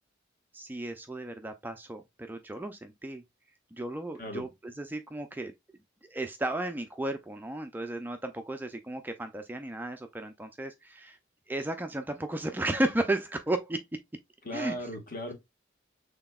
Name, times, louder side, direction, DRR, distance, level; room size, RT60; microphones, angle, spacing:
voice 1, 0.5-3.2 3.7-5.5 6.1-11.2 11.5-13.8 14.5-14.8, right 1 dB, 10° right, 0.4 m, -34 dB
voice 2, 14.4-15.3, equal, 45° left, 1.4 m, -36 dB
5.8 x 3.5 x 2.3 m
head